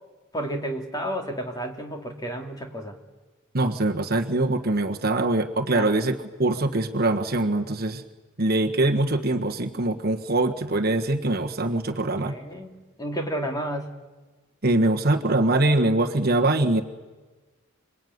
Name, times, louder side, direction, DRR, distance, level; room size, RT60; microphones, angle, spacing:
voice 1, 0.3-3.0 5.7-5.9 12.2-12.7 13.0-13.9, right 1 dB, 15° left, 3 dB, 2.6 m, -31 dB
voice 2, 3.5-8.0 8.4-12.4 14.6-16.8, right 2 dB, 45° right, 4 dB, 1.4 m, -23 dB
27.0 x 21.0 x 9.5 m, 1.3 s
head